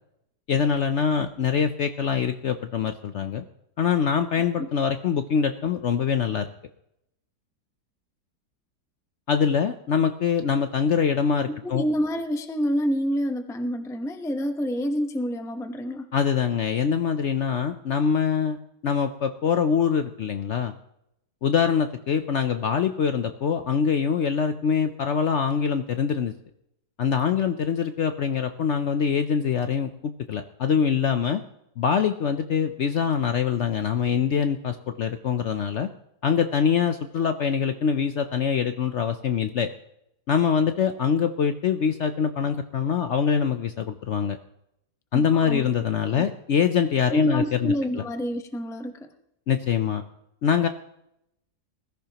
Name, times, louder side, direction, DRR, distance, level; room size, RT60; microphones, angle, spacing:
voice 1, 0.5-3.4 3.8-6.4 9.3-11.8 16.1-18.6 18.8-20.7 21.4-26.3 27.0-31.4 31.8-35.9 36.2-39.7 40.3-44.4 45.1-47.7 49.5-50.0 50.4-50.7, left 7 dB, 60° left, 8 dB, 0.8 m, -24 dB
voice 2, 11.5-16.1 45.1-45.7 46.1-46.2 47.1-49.1, equal, 5° left, 7 dB, 0.5 m, -28 dB
20.5 x 14.0 x 2.9 m, 0.80 s
omnidirectional pair, 1.7 m